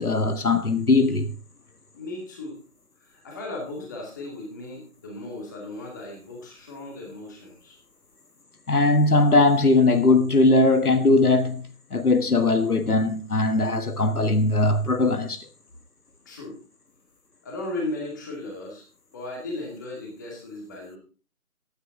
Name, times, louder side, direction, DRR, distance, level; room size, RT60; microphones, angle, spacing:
voice 1, 0.0-1.3 8.7-15.4, left 2 dB, 85° left, 1.6 m, -20 dB
voice 2, 1.9-2.6 3.0-7.8 16.3-16.6 17.4-18.8 19.1-21.0, left 2 dB, 15° left, 2.1 m, -36 dB
14.5 x 9.4 x 3.7 m
figure-of-eight pair, 165°, 44 cm